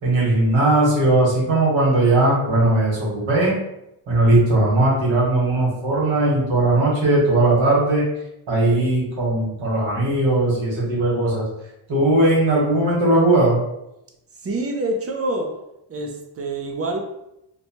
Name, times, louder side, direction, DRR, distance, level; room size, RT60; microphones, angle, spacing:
voice 1, 0.0-3.6 4.1-8.0 8.5-11.4 11.9-13.6, right 2 dB, 65° right, -5 dB, 1.4 m, -18 dB
voice 2, 14.4-15.5 15.9-17.0, right 2 dB, 30° right, 2 dB, 0.4 m, -26 dB
2.9 x 2.2 x 2.8 m, 0.85 s
wide cardioid pair, 115°, 50 cm